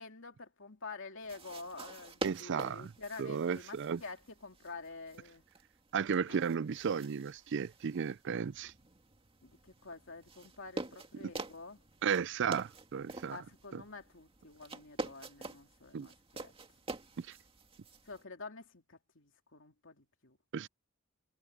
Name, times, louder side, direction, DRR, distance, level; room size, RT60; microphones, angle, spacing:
voice 1, 0.0-5.4 6.3-6.4 9.4-11.8 13.2-16.5 18.0-20.4, left 3 dB, 65° left, 3.1 m, -48 dB
sound 1, 1.2-18.2, right 2 dB, 25° right, 2.2 m, -47 dB
voice 2, 2.2-2.9 3.2-4.0 5.9-8.7 11.2-11.3 12.0-13.4 13.7-13.8 15.9-16.1 17.2-17.3 20.5-20.7, right 6 dB, 60° right, 0.4 m, -34 dB
head